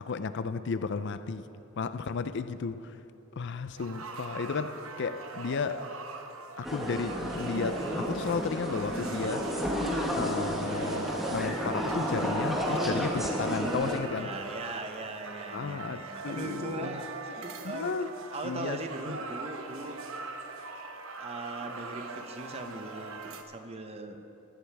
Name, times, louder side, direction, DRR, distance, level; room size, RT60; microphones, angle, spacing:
voice 1, 0.0-1.5 1.8-3.0 3.3-5.8 6.6-9.6 10.1-14.3 15.5-17.0 17.6-18.1 18.4-18.8 19.1-19.2, left 5 dB, 60° left, 0.5 m, -33 dB
sound 1, 3.8-23.4, right 3 dB, 75° right, 0.9 m, -42 dB
sound 2, 6.6-14.0, equal, ahead, 1.4 m, -31 dB
voice 2, 14.2-18.0 18.3-20.1 20.5-20.6 21.0-24.3, right 2 dB, 30° right, 0.8 m, -40 dB
16.5 x 13.5 x 3.4 m
head